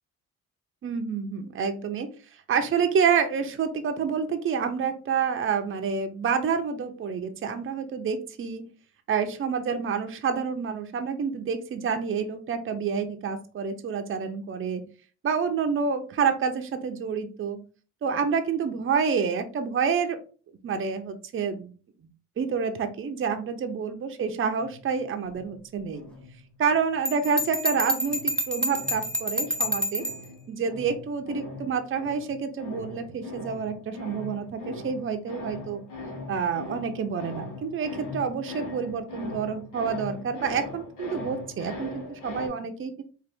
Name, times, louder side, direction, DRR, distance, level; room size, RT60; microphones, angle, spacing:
voice 1, 0.8-2.1 2.5-8.6 9.1-14.8 15.2-17.6 18.0-20.2 20.6-21.7 22.4-26.0 26.6-30.0 30.5-35.8 36.3-43.0, right 6 dB, 45° right, 6 dB, 0.7 m, -28 dB
sound 1, 24.5-26.9 27.3-42.5, left 2 dB, 85° left, 1.2 m, -41 dB
Bell, 27.1-30.2, equal, 5° left, 0.7 m, -28 dB
3.8 x 2.6 x 3.5 m, 0.37 s
cardioid pair, 90°, 30 cm